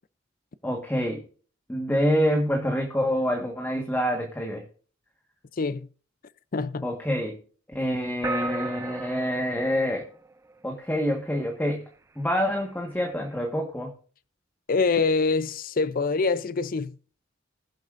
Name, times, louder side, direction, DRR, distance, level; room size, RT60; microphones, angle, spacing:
voice 1, 0.6-1.2 1.7-4.6 6.8-7.4 7.7-10.0 10.6-11.8 12.1-13.9, equal, 10° left, 1.5 m, -26 dB
voice 2, 5.6-5.9 6.5-6.9 14.7-17.0, left 4 dB, 45° left, 0.5 m, -25 dB
sound 1, 8.2-10.9, right 3 dB, 15° right, 0.4 m, -34 dB
20.5 x 7.6 x 2.6 m
head